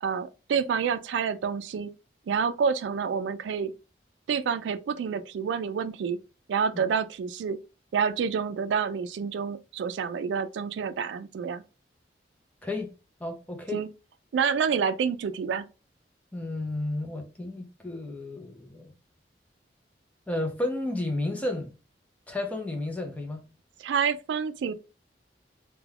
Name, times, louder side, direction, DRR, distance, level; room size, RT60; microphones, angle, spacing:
voice 1, 0.0-1.9 2.3-3.7 4.3-6.2 6.5-7.6 7.9-11.6 13.7-13.9 14.3-15.7 23.8-24.7, right 6 dB, 85° right, 0.3 m, -28 dB
voice 2, 12.6-12.9 13.2-13.8 16.3-19.0 20.3-21.7 22.3-23.4, left 2 dB, 10° left, 0.5 m, -32 dB
2.3 x 2.2 x 3.2 m
head